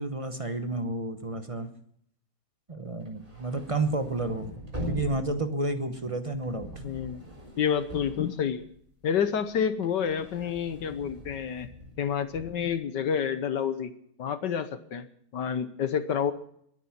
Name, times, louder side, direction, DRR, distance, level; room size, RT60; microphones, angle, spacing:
voice 1, 0.0-1.7 2.7-4.5 4.9-6.7, right 2 dB, 35° right, 8 dB, 0.5 m, -31 dB
sound 1, 2.9-9.0 9.4-12.7, equal, 15° right, 4.0 m, -42 dB
voice 2, 6.8-7.2 7.6-8.6 9.0-11.7 12.0-13.9 14.2-15.1 15.3-16.3, left 7 dB, 60° left, 11 dB, 1.4 m, -29 dB
22.5 x 9.5 x 5.9 m, 0.67 s
omnidirectional pair, 2.4 m